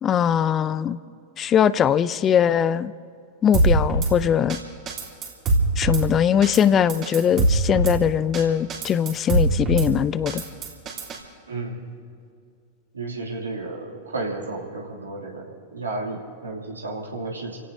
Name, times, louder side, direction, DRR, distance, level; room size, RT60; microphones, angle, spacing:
voice 1, 0.0-1.0 1.4-2.9 3.4-4.6 5.8-10.4, left 8 dB, 30° left, 17 dB, 0.5 m, -21 dB
Drum kit / Snare drum, 3.5-4.1 4.5-4.6 4.9-6.0 6.4-6.6 6.9-8.0 8.3-8.4 8.7-9.9 10.3-11.2, right 2 dB, 35° right, 3.1 m, -22 dB
voice 2, 12.9-17.6, right 2 dB, 85° right, -2 dB, 2.7 m, -32 dB
29.5 x 17.0 x 2.8 m, 2.4 s
figure-of-eight pair, 95°, 0 cm